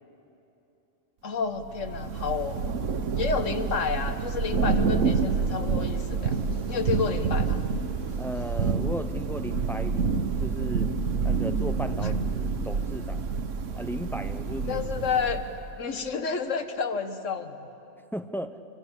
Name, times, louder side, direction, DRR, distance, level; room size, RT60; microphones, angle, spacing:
voice 1, 1.2-2.6 3.2-6.4 6.7-7.6 14.7-15.4 15.8-17.7, left 5 dB, 75° left, 7 dB, 1.7 m, -30 dB
Thunder / Rain, 1.6-15.7, right 5 dB, 75° right, 1.3 m, -28 dB
sound 1, 3.1-8.7, left 3 dB, 55° left, 2.1 m, -48 dB
voice 2, 8.2-10.1 10.4-10.9 11.2-13.2 13.8-14.8 18.1-18.6, equal, ahead, 8 dB, 0.5 m, -36 dB
25.0 x 25.0 x 8.1 m, 3.0 s
omnidirectional pair, 1.3 m